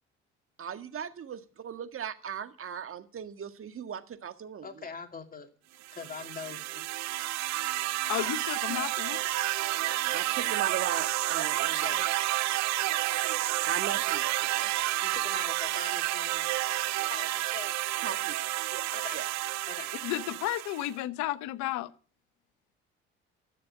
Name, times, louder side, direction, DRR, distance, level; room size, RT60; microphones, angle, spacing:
voice 1, 0.6-4.9 10.1-12.0 13.6-14.7 18.0-18.3 18.7-18.8 19.1-19.3, right 8 dB, 50° right, 1.8 m, -38 dB
voice 2, 4.6-5.5 5.9-6.9 8.2-8.3 11.7-12.1 15.0-16.5 17.0-17.8 18.9-19.2 19.7-19.9, left 5 dB, 30° left, 2.6 m, -42 dB
sound 1, 5.8-20.9, right 17 dB, 70° right, 0.7 m, -30 dB
voice 3, 8.1-9.2 20.0-21.9, left 15 dB, 75° left, 1.0 m, -32 dB
13.5 x 6.8 x 9.9 m
hypercardioid pair, 60°, 29 cm